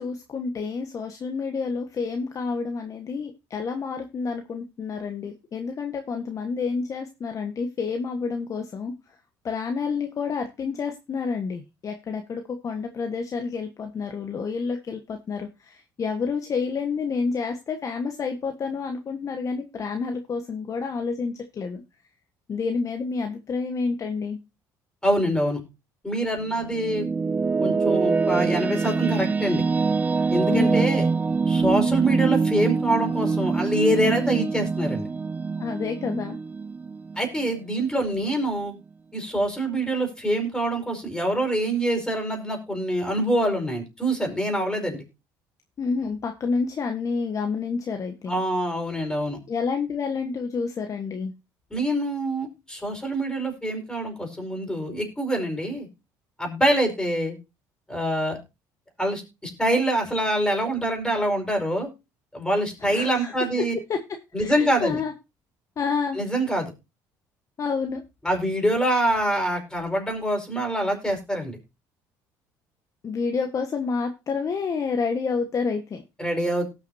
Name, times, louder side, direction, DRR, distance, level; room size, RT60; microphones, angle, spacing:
voice 1, 0.0-8.9 9.4-21.8 22.5-24.4 30.5-30.9 35.6-36.4 45.8-48.4 49.5-51.3 62.8-63.3 63.9-65.1 65.8-66.2 67.6-68.0 73.0-76.0, left 5 dB, 40° left, 4 dB, 1.4 m, -29 dB
voice 2, 25.0-25.6 26.0-27.1 27.6-29.6 30.3-31.1 31.5-35.1 37.2-38.7 39.1-45.0 48.3-49.4 51.7-55.9 56.4-57.4 57.9-58.4 59.0-61.9 62.3-63.7 64.3-65.0 66.1-66.7 68.2-71.6 76.2-76.7, right 1 dB, 10° left, 2 dB, 5.0 m, -25 dB
sound 1, 26.4-37.7, right 4 dB, 20° right, 0.5 m, -24 dB
18.5 x 6.5 x 2.7 m, 0.27 s
supercardioid pair, 80°, 8 cm